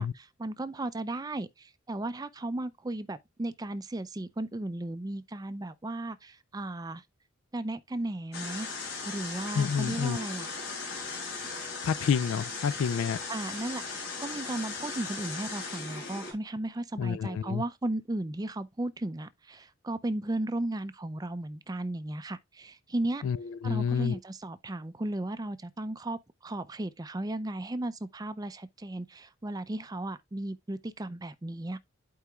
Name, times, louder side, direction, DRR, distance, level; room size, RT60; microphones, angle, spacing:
voice 1, 0.0-7.0 7.5-8.7 9.0-10.5 13.3-23.2 23.6-31.8, right 1 dB, 20° right, 0.4 m, -35 dB
sound 1, 8.3-16.3, left 4 dB, 55° left, 3.0 m, -38 dB
voice 2, 9.5-10.3 11.8-13.2 17.0-17.6 23.2-24.2, left 7 dB, 70° left, 0.3 m, -29 dB
11.5 x 4.7 x 2.3 m
head